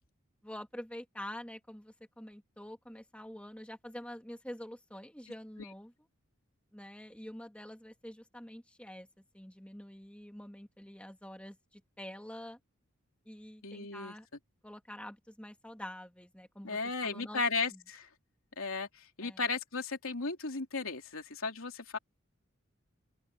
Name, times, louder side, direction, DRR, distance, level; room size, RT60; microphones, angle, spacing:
voice 1, 0.4-5.9 6.7-9.1 9.3-12.6 13.3-14.3 14.6-17.4 17.7-17.8 19.2-19.4, left 1 dB, 5° left, 2.0 m, -47 dB
voice 2, 13.6-14.1 16.6-18.1 18.6-22.0, left 4 dB, 80° left, 3.1 m, -35 dB
open air
head